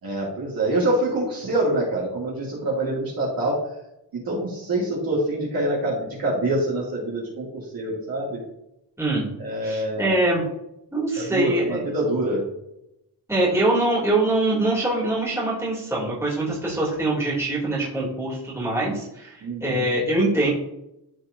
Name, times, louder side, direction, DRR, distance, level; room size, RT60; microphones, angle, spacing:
voice 1, 0.0-3.6 4.2-8.4 9.4-10.2 11.2-12.4 19.4-19.8, right 1 dB, 50° right, -5 dB, 2.5 m, -25 dB
voice 2, 9.6-10.4 10.9-11.8 13.3-20.5, right 2 dB, 5° right, -7 dB, 2.9 m, -23 dB
13.0 x 4.5 x 2.7 m, 0.85 s
wide cardioid pair, 165°, 45 cm